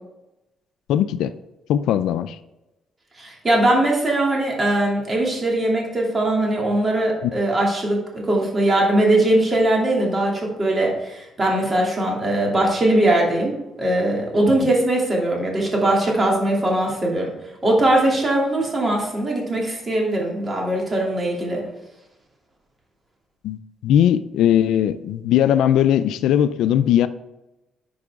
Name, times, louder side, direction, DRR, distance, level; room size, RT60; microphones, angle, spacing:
voice 1, 0.9-1.3 1.7-2.4 7.2-7.3 14.6-14.7 23.4-27.1, left 10 dB, 85° left, 12 dB, 0.4 m, -19 dB
voice 2, 3.2-17.3 17.6-21.6, right 1 dB, 30° right, -2 dB, 2.7 m, -20 dB
11.0 x 4.7 x 3.6 m, 0.97 s
cardioid pair, 90°, 0 cm